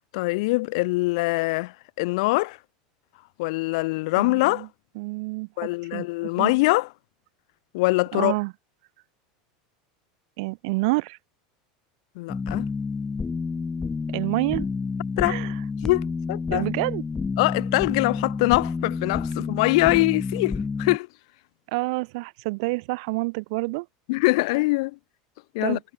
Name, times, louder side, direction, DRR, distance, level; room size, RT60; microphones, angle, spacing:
voice 1, 0.1-2.6 3.4-4.7 5.6-6.9 7.7-8.3 12.2-12.7 15.2-15.4 15.8-16.7 17.4-21.1 24.1-25.0 25.5-25.8, left 24 dB, 70° left, 0.9 m, -23 dB
voice 2, 4.2-4.7 4.9-5.5 5.9-6.1 6.4-6.5 8.1-8.5 10.4-11.2 14.1-14.7 15.2-15.5 16.5-17.0 21.7-23.9 25.6-25.8, right 26 dB, 65° right, 1.2 m, -28 dB
sound 1, 12.3-21.0, left 4 dB, 15° left, 1.2 m, -29 dB
supercardioid pair, 135°, 3 cm